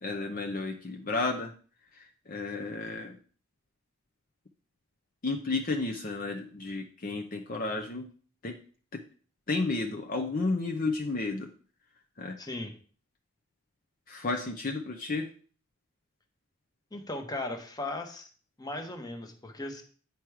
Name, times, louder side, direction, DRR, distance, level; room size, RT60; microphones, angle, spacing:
voice 1, 0.0-1.5 1.9-3.2 5.2-8.1 8.4-8.6 8.9-9.0 9.5-11.5 12.2-12.4 14.1-15.3, left 3 dB, 40° left, 3 dB, 0.6 m, -32 dB
voice 2, 12.4-12.7 16.9-18.3 18.6-19.8, left 2 dB, 20° left, 5 dB, 1.0 m, -37 dB
9.4 x 4.6 x 4.8 m, 0.43 s
head